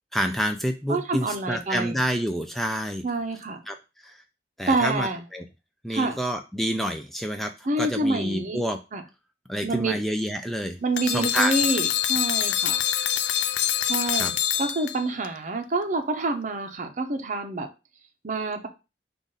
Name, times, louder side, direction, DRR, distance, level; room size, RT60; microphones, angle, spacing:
voice 1, 0.1-3.0 3.7-3.8 4.0-4.2 4.6-5.4 5.8-8.8 9.5-11.5 14.1-14.3, equal, ahead, 5 dB, 0.3 m, -28 dB
voice 2, 0.9-2.0 3.0-3.7 4.7-5.2 5.9-6.2 7.6-8.6 8.9-9.0 9.6-10.0 10.8-12.8 13.8-17.7 18.2-18.7, right 2 dB, 45° right, 6 dB, 0.6 m, -27 dB
sound 1, 11.0-15.3, left 10 dB, 90° left, 0.4 m, -25 dB
5.1 x 2.5 x 3.9 m, 0.29 s
head